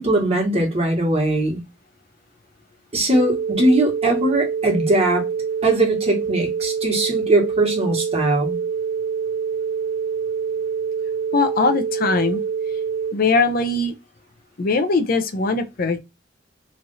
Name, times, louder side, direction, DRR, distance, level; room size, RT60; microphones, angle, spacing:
voice 1, 0.0-1.6 2.9-5.2 5.6-8.6, right 1 dB, 35° right, 1.3 m, -20 dB
sound 1, 3.1-13.1, right 6 dB, 90° right, 0.4 m, -25 dB
voice 2, 11.3-12.4 13.1-13.9 14.6-16.0, left 3 dB, 50° left, 0.5 m, -20 dB
3.1 x 2.5 x 3.9 m
head